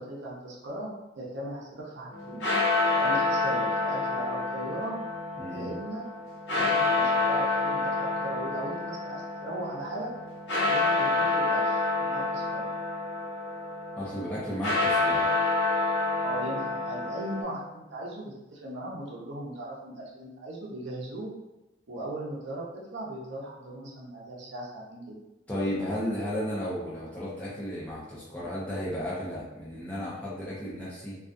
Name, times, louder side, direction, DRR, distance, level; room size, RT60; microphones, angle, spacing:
voice 1, 0.0-5.0 5.5-6.1 6.5-10.1 10.7-12.6 16.2-21.3 21.9-22.6 22.9-25.0, right 1 dB, 70° right, -4 dB, 0.7 m, -38 dB
sound 1, 2.1-17.4, left 3 dB, 65° left, 0.7 m, -28 dB
voice 2, 5.4-5.7 14.0-15.3 25.5-31.2, equal, 10° left, -9 dB, 0.5 m, -34 dB
2.4 x 2.3 x 2.5 m, 1.0 s
head